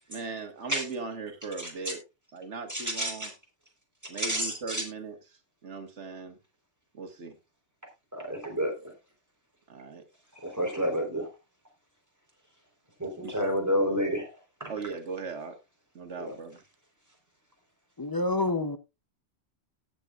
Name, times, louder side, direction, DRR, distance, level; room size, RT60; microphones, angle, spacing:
voice 1, 0.1-2.0 2.3-3.3 4.1-6.4 6.9-7.4 9.7-10.1 13.2-13.4 14.7-15.6 16.0-16.6, right 4 dB, 85° right, 1.8 m, -39 dB
voice 2, 1.6-1.9 2.7-3.3 4.1-4.8 8.1-8.9 10.3-11.3 13.0-14.3 14.6-14.7 16.2-16.3, equal, 15° right, 4.0 m, -30 dB
voice 3, 18.0-18.8, left 2 dB, 25° left, 0.6 m, -27 dB
18.0 x 8.0 x 2.4 m
omnidirectional pair, 1.2 m